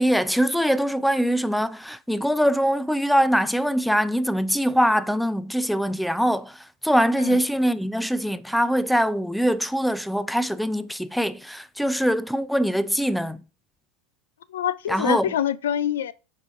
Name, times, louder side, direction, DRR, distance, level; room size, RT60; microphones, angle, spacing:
voice 1, 0.0-13.4 14.9-15.3, equal, ahead, 0.4 m, -23 dB
voice 2, 14.5-16.1, left 10 dB, 90° left, 0.3 m, -25 dB
8.0 x 4.8 x 2.5 m
hypercardioid pair, 110°, 0 cm